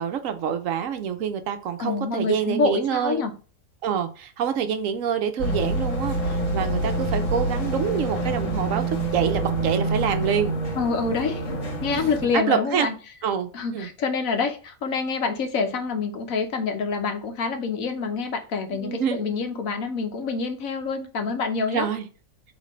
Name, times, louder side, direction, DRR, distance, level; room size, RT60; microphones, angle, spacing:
voice 1, 0.0-3.2 3.8-10.6 11.9-12.9 13.2-13.9 18.7-19.2 21.7-22.1, right 8 dB, 75° right, 1.0 m, -26 dB
voice 2, 1.8-3.3 10.7-11.4 11.8-12.9 13.5-21.9, left 4 dB, 80° left, 1.3 m, -26 dB
sound 1, 5.4-12.4, right 2 dB, 65° left, 1.6 m, -26 dB
5.1 x 3.3 x 3.1 m
omnidirectional pair, 1.4 m